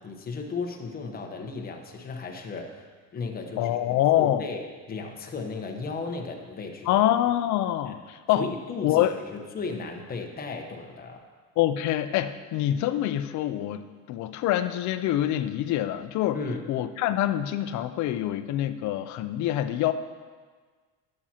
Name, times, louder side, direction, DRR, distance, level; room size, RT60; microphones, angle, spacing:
voice 1, 0.0-2.8 3.1-3.8 4.1-7.0 7.9-8.0 8.3-9.2 9.5-11.2 16.3-16.7, left 4 dB, 25° left, 3 dB, 1.1 m, -35 dB
voice 2, 3.6-4.4 6.9-8.5 8.8-9.1 11.6-16.4 16.7-19.9, left 12 dB, 55° left, 11 dB, 0.6 m, -25 dB
12.0 x 7.6 x 2.9 m, 1.5 s
cardioid pair, 130°, 35 cm